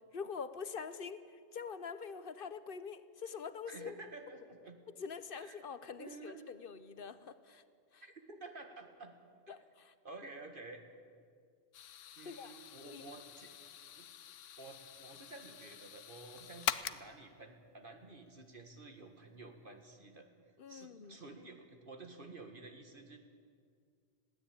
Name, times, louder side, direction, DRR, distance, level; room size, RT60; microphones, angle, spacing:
voice 1, 0.1-3.9 5.0-7.6 7.9-8.0 9.5-9.9 12.2-12.6 12.9-13.1 20.6-21.2, left 6 dB, 50° left, 13 dB, 1.0 m, -45 dB
voice 2, 3.7-4.8 5.4-5.6 6.0-6.4 8.0-9.1 9.5-9.6 10.0-10.8 12.2-13.5 14.0-14.1 14.6-20.3 20.7-23.2, right 3 dB, 45° right, 4 dB, 2.0 m, -51 dB
sound 1, 11.7-17.3, left 10 dB, 80° left, 1.1 m, -44 dB
21.0 x 16.0 x 8.8 m, 2.1 s
omnidirectional pair, 1.3 m